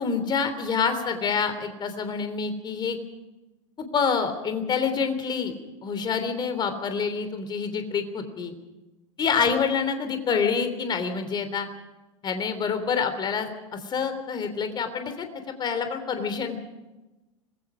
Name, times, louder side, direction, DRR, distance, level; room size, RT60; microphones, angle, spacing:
voice 1, 0.0-3.0 3.8-5.5 5.8-8.5 9.2-11.7 12.2-15.3 15.6-16.6, left 6 dB, 25° left, 8 dB, 3.3 m, -27 dB
26.0 x 21.5 x 5.0 m, 1.1 s
figure-of-eight pair, 80°, 17 cm